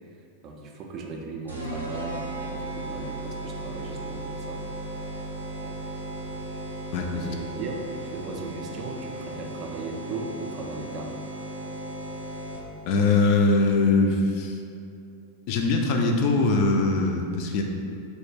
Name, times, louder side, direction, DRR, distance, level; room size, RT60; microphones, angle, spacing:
voice 1, 0.4-4.6 5.6-5.8 7.1-11.2, right 3 dB, 35° right, 1 dB, 0.4 m, -37 dB
sound 1, 1.5-12.9, right 1 dB, 85° right, 0.6 m, -36 dB
voice 2, 12.9-14.6 15.5-17.6, left 3 dB, 45° left, 3 dB, 0.4 m, -22 dB
4.1 x 2.1 x 3.2 m, 2.6 s
figure-of-eight pair, 90°, 0 cm